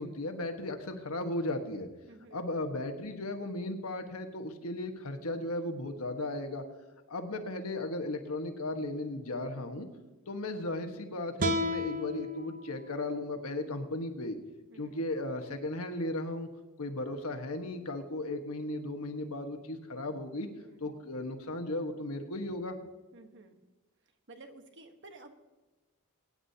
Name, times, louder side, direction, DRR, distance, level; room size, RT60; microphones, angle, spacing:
voice 1, 0.0-1.9 2.3-6.6 7.1-9.9 10.3-14.4 14.8-16.5 16.8-20.5 20.8-22.8, left 2 dB, 75° left, 5 dB, 1.4 m, -36 dB
voice 2, 2.1-2.4 14.7-15.0 20.6-20.9 23.1-23.6 24.3-25.3, right 2 dB, 55° right, 6 dB, 1.2 m, -53 dB
sound 1, 11.4-14.6, left 1 dB, 35° right, 0.7 m, -35 dB
23.5 x 9.8 x 2.8 m, 1.1 s
head